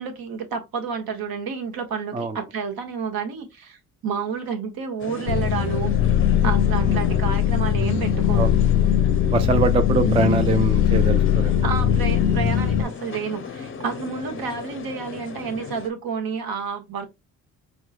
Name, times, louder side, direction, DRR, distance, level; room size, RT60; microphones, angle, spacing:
voice 1, 0.0-5.9 6.4-8.5 10.0-10.2 11.6-17.1, right 6 dB, 60° right, 1.0 m, -30 dB
sound 1, 5.0-15.9, left 6 dB, 30° left, 0.6 m, -37 dB
sound 2, 5.3-12.8, left 9 dB, 80° left, 0.5 m, -20 dB
voice 2, 9.3-11.6, right 4 dB, 15° right, 0.3 m, -24 dB
4.3 x 2.3 x 2.3 m
hypercardioid pair, 55°, 41 cm